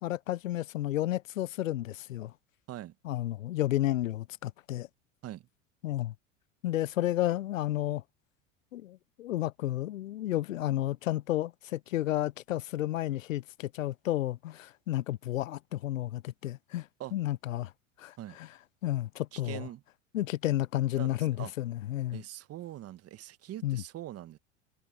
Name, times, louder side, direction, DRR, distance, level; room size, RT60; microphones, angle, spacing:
voice 1, 0.0-2.3 3.0-4.9 5.8-6.1 6.6-8.0 8.7-17.7 18.0-18.5 18.8-19.7 20.1-22.2 23.6-23.8, left 14 dB, 85° left, 0.6 m, -32 dB
voice 2, 19.3-19.8 21.0-21.1 21.4-21.5 22.1-24.4, right 13 dB, 40° right, 1.5 m, -42 dB
hypercardioid pair, 90°, 38 cm